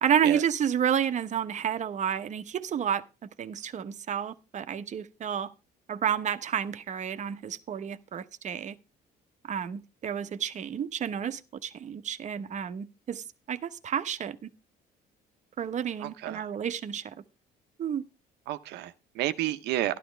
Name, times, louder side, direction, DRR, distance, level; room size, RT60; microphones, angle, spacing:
voice 1, 0.0-5.5 5.9-8.7 9.5-14.4 15.6-17.1 17.8-18.0, right 8 dB, 45° right, 1.0 m, -30 dB
voice 2, 16.0-16.4 18.5-20.0, right 14 dB, 80° right, 1.0 m, -31 dB
12.0 x 12.0 x 3.4 m
cardioid pair, 110°, 17 cm